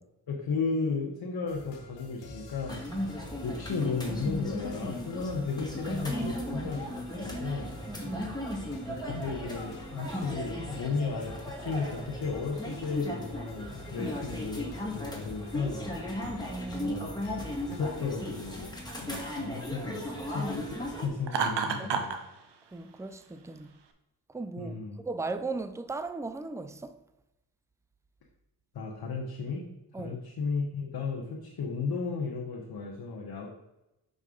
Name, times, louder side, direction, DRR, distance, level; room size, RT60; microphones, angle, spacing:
voice 1, 0.3-2.8 3.4-7.7 8.9-14.7 14.9-15.8 16.8-17.1 17.7-18.7 19.0-22.2 24.6-25.0 28.7-29.6 30.0-33.5, left 4 dB, 65° left, 1.2 m, -34 dB
sound 1, 1.5-18.1, left 2 dB, 85° left, 1.2 m, -47 dB
sound 2, 2.7-21.1, left 1 dB, 10° left, 2.1 m, -37 dB
voice 2, 6.1-6.7 7.9-8.4 14.0-14.2 16.5-17.0 21.8-21.9 22.7-23.7 24.3-27.0 29.9-30.2, right 3 dB, 5° right, 0.5 m, -37 dB
Laughter, 21.3-22.2, right 5 dB, 70° right, 0.9 m, -29 dB
6.2 x 5.3 x 3.8 m
supercardioid pair, 45°, 42 cm